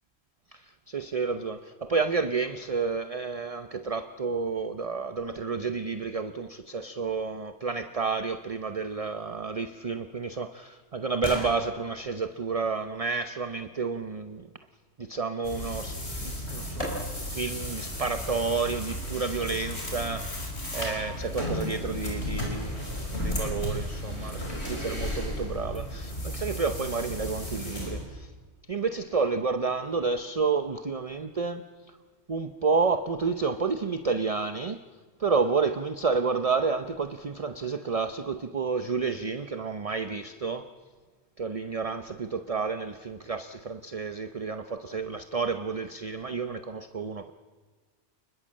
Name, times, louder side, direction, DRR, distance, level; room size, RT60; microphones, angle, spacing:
voice 1, 0.5-14.5 15.0-16.9 17.2-28.3 28.7-31.6 32.3-34.8 35.2-40.7 41.4-47.3, right 4 dB, 35° right, 9 dB, 0.8 m, -30 dB
sound 1, 9.9-13.8 15.9-16.0 16.8-17.5 18.0-18.1, equal, 30° left, 5.5 m, -41 dB
sound 2, 15.4-28.0, left 1 dB, 70° left, 5.3 m, -34 dB
28.5 x 21.0 x 7.6 m, 1.4 s
omnidirectional pair, 1.1 m